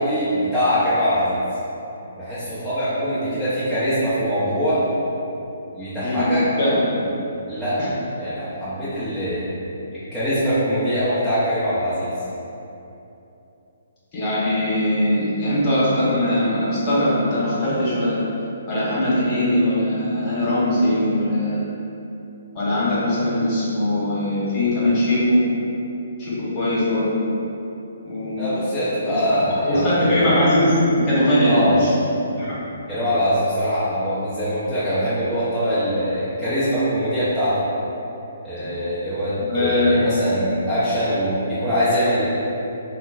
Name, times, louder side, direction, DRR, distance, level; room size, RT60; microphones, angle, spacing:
voice 1, 0.0-1.4 2.2-4.8 5.5-6.4 7.0-7.2 7.5-7.8 8.2-9.5 9.9-12.1 28.4-30.3 31.4-31.8 32.9-37.7 38.4-42.3, equal, ahead, -16 dB, 0.7 m, -23 dB
voice 2, 6.0-6.3 6.6-6.8 7.8-7.9 14.1-18.2 18.7-21.6 22.5-25.4 26.2-27.2 28.0-28.4 29.1-29.2 29.7-31.9 32.4-32.5 38.6-38.7 39.4-40.0, left 1 dB, 30° left, -9 dB, 1.2 m, -20 dB
5.4 x 2.1 x 2.4 m, 2.9 s
hypercardioid pair, 145°, 0 cm